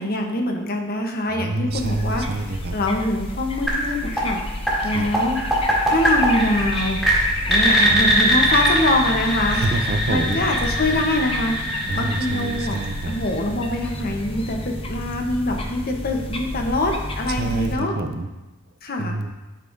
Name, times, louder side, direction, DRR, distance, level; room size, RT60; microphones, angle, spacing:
voice 1, 0.0-4.4 4.8-5.4 5.9-7.0 7.5-9.6 10.1-11.6 11.9-12.8 13.1-17.9 18.8-19.2, left 1 dB, 45° left, 3 dB, 0.9 m, -24 dB
voice 2, 1.3-2.8 4.8-5.1 7.8-8.0 9.5-10.4 11.9-13.2 17.3-18.3 19.0-19.3, right 2 dB, 50° right, 7 dB, 0.5 m, -27 dB
sound 1, 1.7-17.8, left 1 dB, 25° left, 0.6 m, -30 dB
sound 2, 3.7-13.5, equal, ahead, 1.7 m, -22 dB
11.0 x 5.5 x 2.6 m, 1.1 s
head